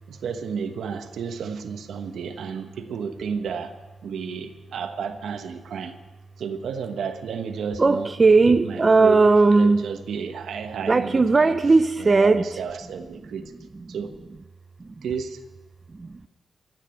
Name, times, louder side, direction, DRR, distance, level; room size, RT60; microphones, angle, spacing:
voice 1, 0.1-6.0 6.4-8.1 8.5-11.6 12.0-13.5 13.9-14.2 15.0-15.4, right 6 dB, 85° right, 7 dB, 1.2 m, -32 dB
voice 2, 7.8-9.8 10.9-12.4 14.8-15.0 15.9-16.3, right 3 dB, 30° right, 9 dB, 0.5 m, -18 dB
14.0 x 9.0 x 8.9 m, 1.2 s
cardioid pair, 90°, 0 cm